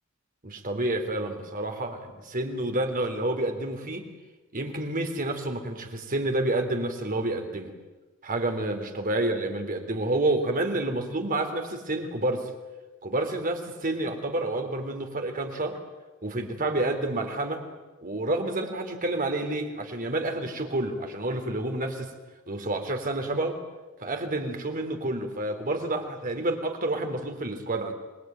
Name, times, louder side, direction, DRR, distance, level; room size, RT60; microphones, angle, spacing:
voice 1, 0.4-4.0 4.5-7.7 8.2-12.5 13.0-15.8 16.2-17.6 18.0-22.1 22.5-23.6 24.0-27.9, right 2 dB, 40° right, 5 dB, 3.4 m, -29 dB
26.5 x 20.5 x 9.3 m, 1.2 s
head